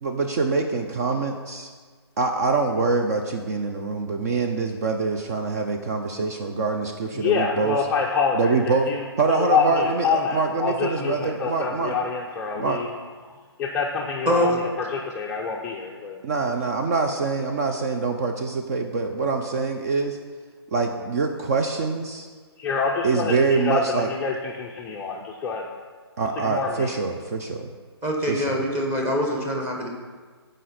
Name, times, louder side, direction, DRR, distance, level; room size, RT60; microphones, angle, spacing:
voice 1, 0.0-1.7 2.2-7.8 8.3-8.9 9.2-12.0 12.6-12.8 16.2-20.2 20.7-22.3 23.0-24.1 26.2-27.7 28.3-28.6, right 4 dB, 35° right, 4 dB, 0.6 m, -25 dB
voice 2, 7.2-8.6 8.9-9.0 9.3-12.9 13.6-14.5 14.9-16.2 22.6-25.6 26.5-26.9, left 5 dB, 10° left, -2 dB, 0.5 m, -26 dB
voice 3, 14.2-14.6 28.0-29.9, equal, 15° right, 0 dB, 1.4 m, -24 dB
15.0 x 5.2 x 4.2 m, 1.5 s
figure-of-eight pair, 140°, 14 cm